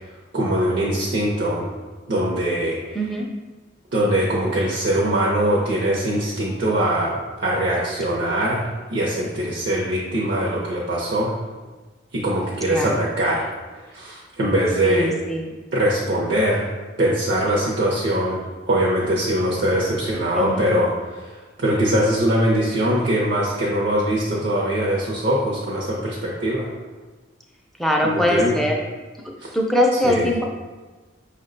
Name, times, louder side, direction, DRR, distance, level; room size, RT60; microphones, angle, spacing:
voice 1, 0.3-1.7 2.1-3.0 3.9-11.3 12.1-15.1 15.7-16.7 17.0-18.4 18.7-26.7 28.0-28.6 29.4-29.5 29.9-30.3, right 1 dB, 60° right, -5 dB, 0.7 m, -22 dB
voice 2, 2.9-3.3 12.7-13.0 14.8-15.5 20.4-20.8 27.8-28.7 29.5-30.4, left 1 dB, ahead, 0 dB, 0.4 m, -22 dB
5.5 x 2.2 x 3.8 m, 1.3 s
head